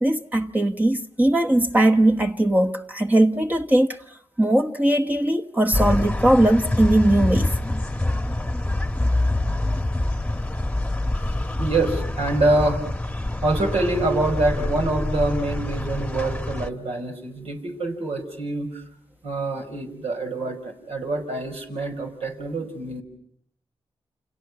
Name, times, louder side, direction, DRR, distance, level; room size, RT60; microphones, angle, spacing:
voice 1, 0.0-4.0 4.4-7.6, right 1 dB, 15° right, 1.0 m, -19 dB
sound 1, 5.7-16.7, left 1 dB, 10° left, 1.2 m, -26 dB
voice 2, 11.6-12.8 13.4-18.8 19.2-23.0, right 2 dB, 75° right, 5.1 m, -25 dB
29.5 x 27.5 x 6.1 m
cardioid pair, 80°, 10 cm